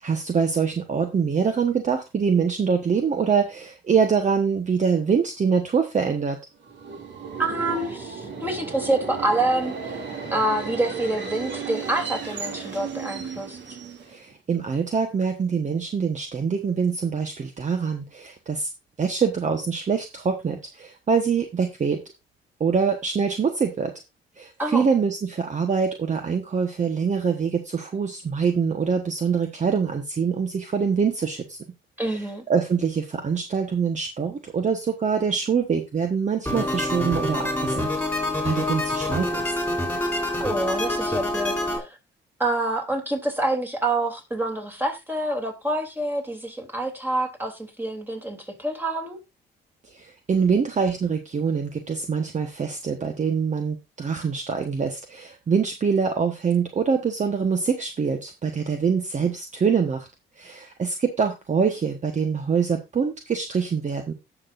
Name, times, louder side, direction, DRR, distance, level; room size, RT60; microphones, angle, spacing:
voice 1, 0.0-6.4 14.1-18.7 19.0-22.0 22.6-23.9 24.4-31.6 32.1-39.5 49.8-60.1 60.4-64.1, right 6 dB, 35° right, 5 dB, 1.2 m, -24 dB
Subway metro underground, 6.6-14.4, right 6 dB, 65° right, 2.4 m, -34 dB
voice 2, 7.4-10.0 10.3-13.6 24.6-24.9 32.0-32.4 40.4-42.0 42.4-49.2, right 1 dB, 10° right, 2 dB, 2.9 m, -27 dB
sound 1, 36.5-41.8, left 1 dB, 5° left, 3.7 m, -26 dB
17.5 x 6.1 x 2.5 m, 0.23 s
cardioid pair, 90°, 20 cm